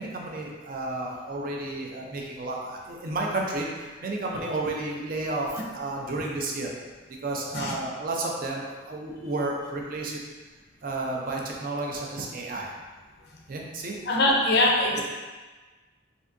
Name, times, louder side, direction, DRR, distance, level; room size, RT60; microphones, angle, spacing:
voice 1, 0.0-6.7 7.2-10.2 10.8-12.7 13.5-13.9 15.0-15.1, right 2 dB, 45° right, -1 dB, 0.4 m, -32 dB
voice 2, 14.1-15.0, left 2 dB, 55° left, -1 dB, 0.4 m, -22 dB
3.4 x 2.6 x 2.5 m, 1.3 s
head